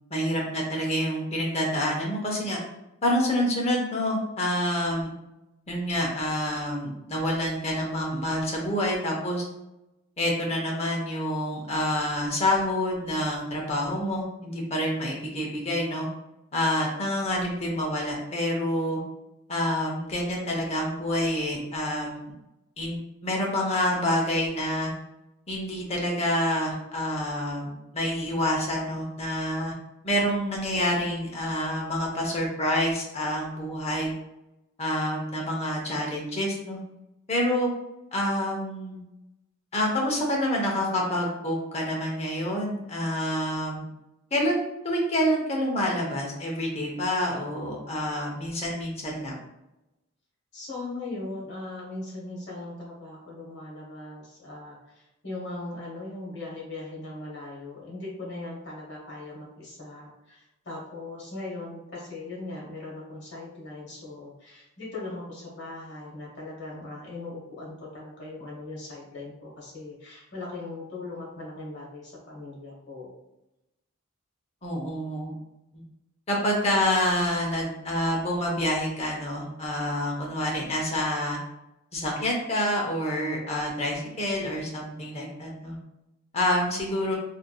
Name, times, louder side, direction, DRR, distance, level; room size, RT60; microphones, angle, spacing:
voice 1, 0.1-2.6 3.0-5.1 5.7-9.5 10.2-16.1 16.5-19.0 19.5-22.2 22.8-24.9 25.5-29.7 30.0-34.1 34.8-36.8 37.3-37.7 38.1-39.0 39.7-43.9 44.3-49.4 74.6-75.3 75.7-75.8 76.3-81.4 81.9-85.8 86.3-87.1, left 1 dB, 30° left, -1 dB, 0.6 m, -27 dB
voice 2, 50.5-73.2, left 2 dB, 55° left, -4 dB, 1.0 m, -39 dB
3.2 x 2.6 x 2.2 m, 0.92 s
head